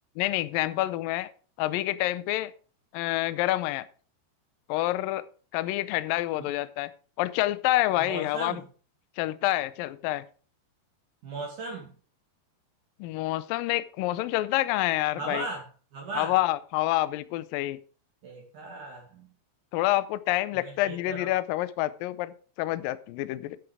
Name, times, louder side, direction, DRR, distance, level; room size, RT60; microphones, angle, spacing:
voice 1, 0.2-1.3 1.6-2.5 2.9-3.9 4.7-5.2 5.5-6.9 7.2-8.6 9.2-10.2 13.0-15.5 16.2-17.8 19.7-23.6, left 16 dB, 85° left, 14 dB, 2.0 m, -27 dB
voice 2, 8.0-8.6 11.2-11.9 15.2-15.6 15.9-16.3 18.2-19.3 20.5-21.3, right 2 dB, 55° right, -1 dB, 3.3 m, -37 dB
11.0 x 7.3 x 4.9 m, 0.39 s
omnidirectional pair, 4.7 m